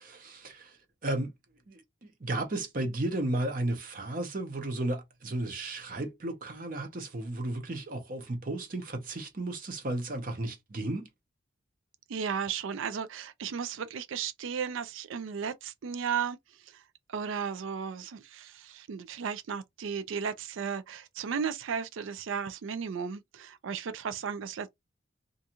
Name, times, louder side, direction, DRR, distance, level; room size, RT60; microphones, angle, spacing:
voice 1, 0.0-1.3 1.7-11.1, right 1 dB, 45° right, 0.7 m, -34 dB
voice 2, 12.1-16.4 16.7-16.8 17.1-24.7, right 6 dB, 80° right, 0.4 m, -35 dB
2.5 x 2.3 x 2.8 m
head